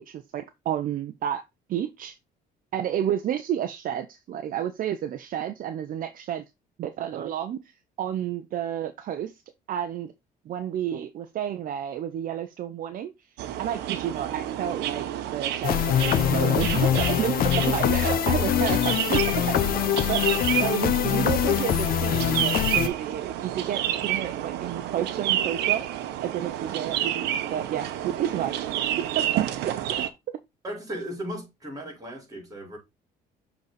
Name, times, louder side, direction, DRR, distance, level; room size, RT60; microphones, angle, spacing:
voice 1, 0.0-1.4 1.7-2.2 2.7-6.4 6.8-7.7 8.0-9.4 9.7-10.1 10.5-13.1 13.6-15.1 15.3-19.6 20.1-20.3 20.6-25.8 26.2-28.5 29.0-30.1, right 10 dB, 55° right, 0.7 m, -30 dB
sound 1, 13.4-30.1, right 11 dB, 85° right, 0.9 m, -30 dB
sound 2, 15.6-22.9, left 10 dB, 60° left, 0.8 m, -23 dB
voice 2, 30.6-32.8, equal, 20° right, 4.6 m, -36 dB
6.8 x 4.0 x 4.1 m
cardioid pair, 110°, 17 cm